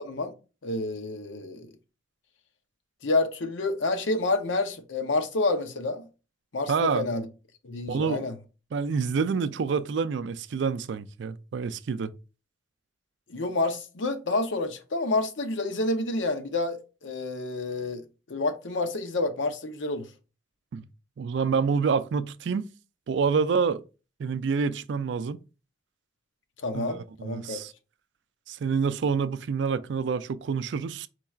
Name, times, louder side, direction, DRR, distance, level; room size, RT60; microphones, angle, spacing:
voice 1, 0.6-1.7 3.0-6.1 6.5-7.3 7.6-8.3 13.3-18.0 18.3-20.1 26.6-27.6, left 2 dB, 75° left, 0.7 m, -28 dB
voice 2, 6.7-7.0 7.9-8.2 8.7-12.1 20.7-20.8 21.2-22.6 23.1-23.8 24.2-25.4 26.7-27.7 28.5-31.1, right 5 dB, 65° right, 0.4 m, -27 dB
4.6 x 2.4 x 4.3 m
head